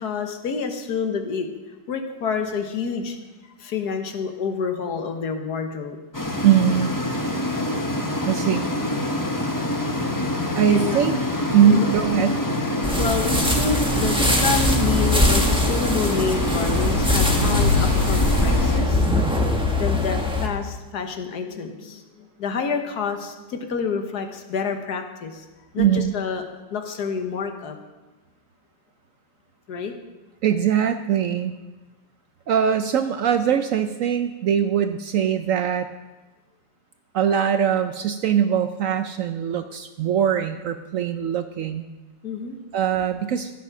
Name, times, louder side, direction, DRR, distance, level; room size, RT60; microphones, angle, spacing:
voice 1, 0.0-1.5 1.9-3.2 3.6-6.0 10.7-11.1 11.7-11.9 13.0-19.1 19.8-25.4 25.7-27.8 29.7-29.9 42.2-42.6, left 5 dB, 60° left, 5 dB, 1.6 m, -28 dB
sound 1, 6.1-18.8, left 1 dB, 15° left, 0.7 m, -26 dB
voice 2, 6.4-6.9 8.3-8.7 10.6-11.2 11.5-12.4 25.8-26.1 30.4-31.5 32.5-35.9 37.1-41.9 42.7-43.5, right 9 dB, 75° right, 9 dB, 0.7 m, -21 dB
sound 2, 12.8-20.5, left 1 dB, 5° right, 1.1 m, -22 dB
sound 3, 16.2-19.4, left 5 dB, 40° left, 2.5 m, -26 dB
15.0 x 8.2 x 6.0 m, 1.2 s
omnidirectional pair, 1.9 m